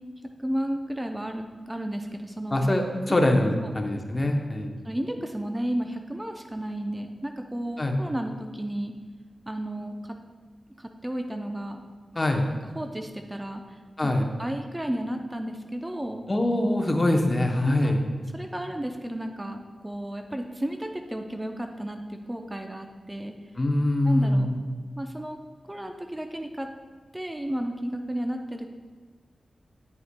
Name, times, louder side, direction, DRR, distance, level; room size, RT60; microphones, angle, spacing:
voice 1, 0.4-2.6 3.1-3.2 3.6-3.7 4.8-8.9 9.5-10.2 10.8-11.8 12.7-14.1 14.4-16.2 17.6-18.1 18.3-23.3 24.0-24.5 25.0-25.4 25.6-26.7 27.1-28.7, right 1 dB, 15° right, 5 dB, 0.5 m, -33 dB
voice 2, 2.5-4.7 7.8-8.0 12.2-12.5 14.0-14.2 16.3-18.0 23.6-24.6, left 1 dB, 35° left, 3 dB, 0.7 m, -23 dB
9.3 x 5.5 x 2.2 m, 1.4 s
cardioid pair, 55°, 0 cm